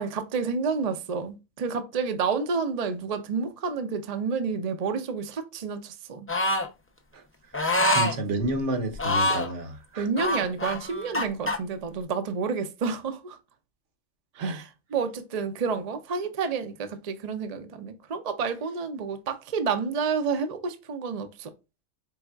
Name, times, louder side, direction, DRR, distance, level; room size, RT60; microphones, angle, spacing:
voice 1, 0.0-6.3 10.0-13.4 14.4-14.6 14.9-21.5, right 5 dB, 45° right, 0.5 m, -29 dB
sound 1, 6.3-6.7 7.5-8.1 8.9-9.5 10.2-11.6, left 1 dB, 20° left, 0.3 m, -25 dB
voice 2, 7.8-10.1 14.4-14.6, right 1 dB, 70° right, 1.2 m, -30 dB
4.7 x 3.5 x 2.3 m
omnidirectional pair, 1.3 m